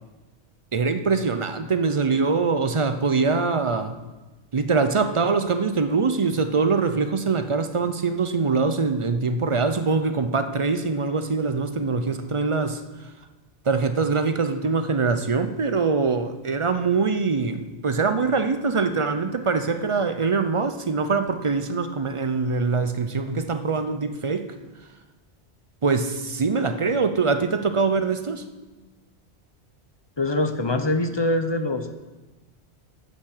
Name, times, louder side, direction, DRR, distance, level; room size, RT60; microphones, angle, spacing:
voice 1, 0.7-4.0 4.5-12.8 13.7-24.5 25.8-28.5, right 4 dB, 40° right, 9 dB, 0.5 m, -23 dB
voice 2, 30.2-31.9, left 2 dB, 30° left, 7 dB, 0.6 m, -24 dB
10.5 x 6.1 x 6.6 m, 1.2 s
omnidirectional pair, 1.1 m